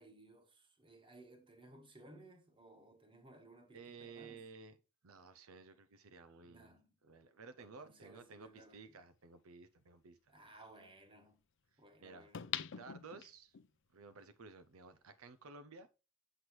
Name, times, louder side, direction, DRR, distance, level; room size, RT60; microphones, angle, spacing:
voice 1, 0.0-4.4 6.4-7.0 7.6-9.0 10.3-11.4 11.8-12.5, right 2 dB, 25° right, 1.4 m, -60 dB
voice 2, 3.7-4.8 5.0-6.8 7.0-10.2 11.7-12.3 12.7-13.6 13.9-15.9, right 4 dB, 70° right, 0.6 m, -55 dB
sound 1, 8.7-8.8 12.3-13.7 14.2-14.3, left 10 dB, 60° left, 0.5 m, -43 dB
7.7 x 6.1 x 3.2 m
head